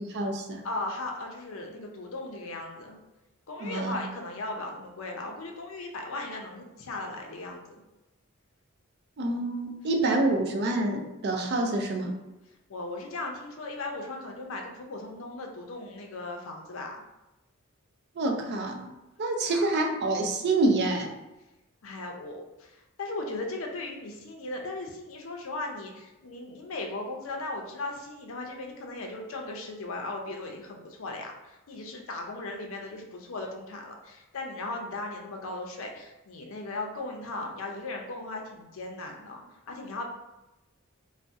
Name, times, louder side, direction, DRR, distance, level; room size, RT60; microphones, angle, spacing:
voice 1, 0.0-0.6 3.6-4.0 9.2-12.2 18.2-18.9 19.2-21.1, right 2 dB, 50° right, 3 dB, 0.4 m, -27 dB
voice 2, 0.6-3.0 3.5-7.8 12.7-17.0 19.4-19.7 21.8-40.1, left 2 dB, 65° left, 2 dB, 0.5 m, -37 dB
2.6 x 2.0 x 3.4 m, 1.0 s
head